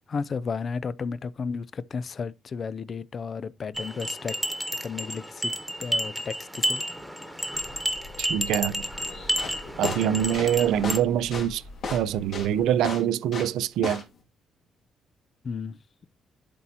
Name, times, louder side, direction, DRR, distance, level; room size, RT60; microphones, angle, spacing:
voice 1, 0.1-4.4 4.8-5.5 5.8-6.8 15.4-15.8, left 5 dB, 45° left, 0.5 m, -33 dB
sound 1, 3.7-11.0, equal, ahead, 1.3 m, -31 dB
sound 2, 7.5-12.7, left 1 dB, 80° left, 2.8 m, -45 dB
voice 2, 8.2-8.8 9.8-11.6 11.9-14.0, right 10 dB, 85° right, 0.5 m, -24 dB
sound 3, 9.2-13.6 13.8-14.2, left 4 dB, 65° left, 2.5 m, -33 dB
11.0 x 4.2 x 3.0 m
cardioid pair, 90°, 0 cm